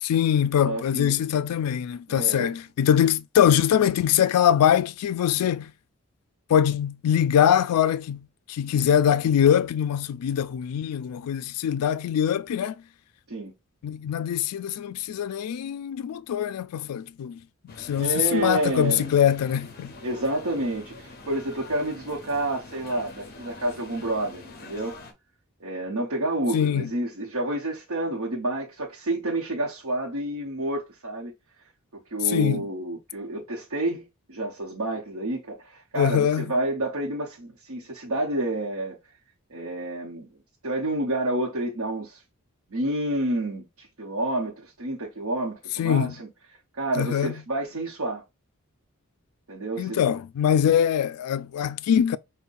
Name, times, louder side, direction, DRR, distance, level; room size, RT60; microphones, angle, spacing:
voice 1, 0.0-5.7 6.5-12.8 13.8-17.4 17.6-19.9 26.5-26.9 32.2-32.7 35.9-36.5 45.8-46.1 47.0-47.3 49.8-52.2, left 9 dB, 90° left, 0.3 m, -23 dB
voice 2, 0.6-1.1 2.1-2.5 13.3-13.5 18.0-19.1 20.0-24.9 25.6-31.3 32.1-39.0 39.5-40.3 40.6-42.2 42.7-46.3 46.8-48.2 49.5-50.0, right 1 dB, 75° right, 0.8 m, -29 dB
sound 1, 17.7-25.1, left 3 dB, 40° left, 0.6 m, -45 dB
5.4 x 2.1 x 2.5 m
head